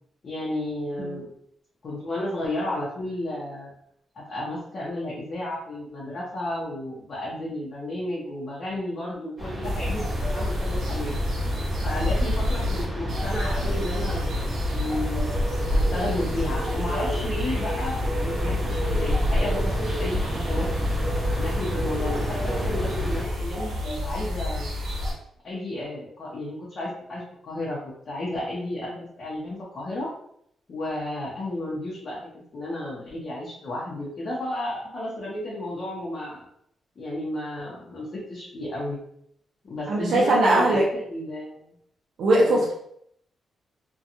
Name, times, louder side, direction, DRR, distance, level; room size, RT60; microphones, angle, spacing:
voice 1, 0.2-1.3 1.8-3.7 4.1-11.1 11.8-15.3 15.7-20.7 21.4-24.8 25.4-30.1 30.7-36.4 37.0-39.0 39.6-41.7 42.3-42.6, left 1 dB, 40° left, -6 dB, 0.6 m, -33 dB
sound 1, 9.4-23.2, equal, 25° right, 0.9 m, -31 dB
sound 2, 9.6-25.1, left 1 dB, 85° right, 0.8 m, -28 dB
voice 2, 39.9-40.9 42.2-42.7, right 1 dB, 60° right, -4 dB, 0.5 m, -20 dB
2.8 x 2.2 x 2.5 m, 0.71 s
wide cardioid pair, 170°, 0 cm